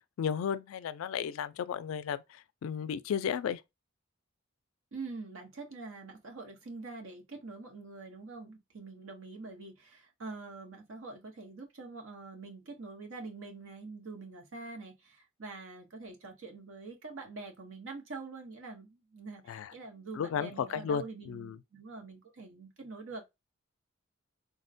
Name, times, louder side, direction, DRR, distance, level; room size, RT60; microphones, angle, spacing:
voice 1, 0.2-3.6 19.5-19.7 20.2-21.6, left 7 dB, 80° left, 0.3 m, -34 dB
voice 2, 4.9-23.2, right 3 dB, 75° right, 0.9 m, -45 dB
3.7 x 2.1 x 2.5 m
head